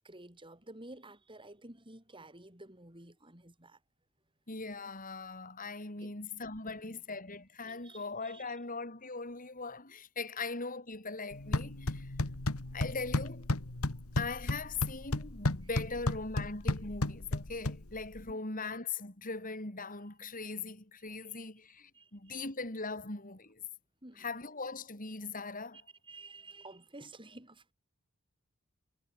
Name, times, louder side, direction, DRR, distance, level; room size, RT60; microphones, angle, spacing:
voice 1, 0.0-3.8 6.0-6.2 6.9-7.0 7.7-8.4 12.2-12.8 13.9-14.0 18.3-18.4 21.2-21.4 21.9-22.4 24.0-24.3 26.0-27.7, right 2 dB, 25° right, 7.7 m, -52 dB
voice 2, 4.5-12.1 12.7-13.5 14.2-23.6 24.2-25.8, left 3 dB, 40° left, 4.5 m, -40 dB
sound 1, 11.3-18.3, left 2 dB, 90° left, 1.9 m, -34 dB
head